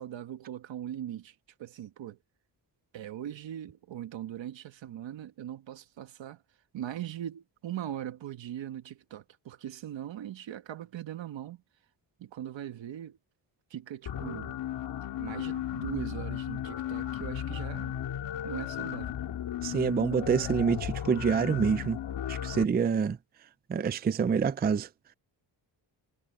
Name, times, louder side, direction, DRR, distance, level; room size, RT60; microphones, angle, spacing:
voice 1, 0.0-2.2 2.9-6.4 6.7-11.6 12.2-13.2 13.7-14.6 15.2-18.0 18.4-19.2, right 11 dB, 85° right, 1.4 m, -40 dB
sound 1, 14.1-22.6, left 10 dB, 75° left, 2.6 m, -35 dB
voice 2, 19.6-22.0 22.3-23.2 23.7-24.9, right 6 dB, 25° right, 0.4 m, -27 dB
wide cardioid pair, 180°, 44 cm